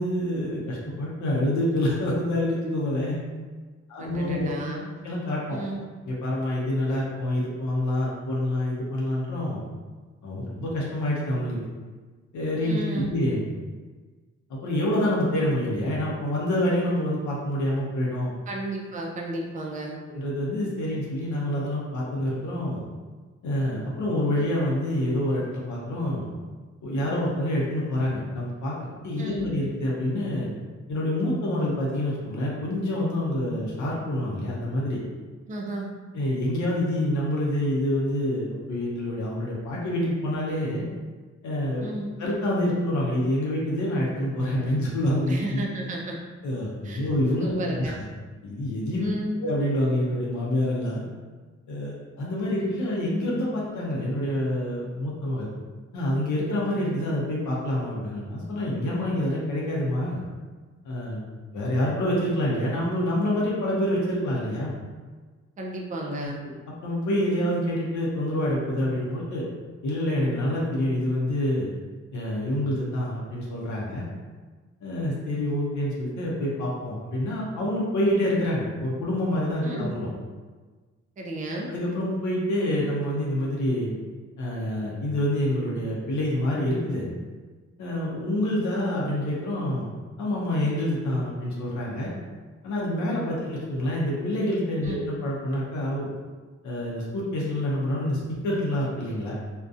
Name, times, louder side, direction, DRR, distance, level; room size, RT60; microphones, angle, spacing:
voice 1, 0.0-3.2 3.9-4.5 5.0-5.6 6.0-9.6 10.2-11.6 12.3-13.5 14.5-18.3 20.1-22.8 23.4-26.3 26.8-30.5 30.9-35.0 36.1-40.9 41.4-41.8 42.2-45.6 46.4-48.0 48.4-49.1 49.4-51.0 51.7-55.5 55.9-60.2 60.8-61.3 61.5-64.8 66.4-66.5 66.8-69.4 69.8-71.7 72.1-74.0 74.8-80.1 81.7-83.9 84.4-87.1 87.8-89.9 90.2-92.1 92.6-96.1 96.6-99.3, left 1 dB, 80° left, -4 dB, 0.6 m, -27 dB
voice 2, 4.0-4.9 5.5-5.8 12.6-13.1 18.5-20.0 29.2-29.5 35.5-35.9 41.8-42.1 45.3-46.2 46.8-47.0 47.4-48.0 49.0-49.4 65.6-66.4 79.6-79.9 81.2-81.7 94.8-95.0, right 1 dB, 25° right, -1 dB, 0.4 m, -33 dB
2.5 x 2.2 x 2.4 m, 1.4 s
cardioid pair, 80°, 29 cm